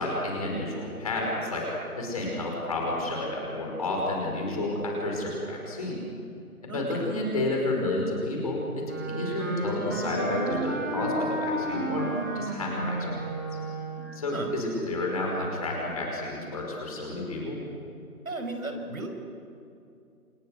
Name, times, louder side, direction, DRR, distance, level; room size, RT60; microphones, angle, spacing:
voice 1, 0.0-1.7 2.0-6.1 6.6-12.1 12.4-13.2 14.1-17.6, left 2 dB, 25° left, -1 dB, 5.2 m, -30 dB
voice 2, 6.7-7.0 14.0-14.5 18.2-19.1, right 2 dB, 65° right, 4 dB, 5.5 m, -36 dB
Wind instrument woodwind instrument, 8.8-14.2, right 2 dB, 10° right, 1.5 m, -32 dB
29.0 x 27.0 x 6.5 m, 2.5 s
figure-of-eight pair, 170°, 46 cm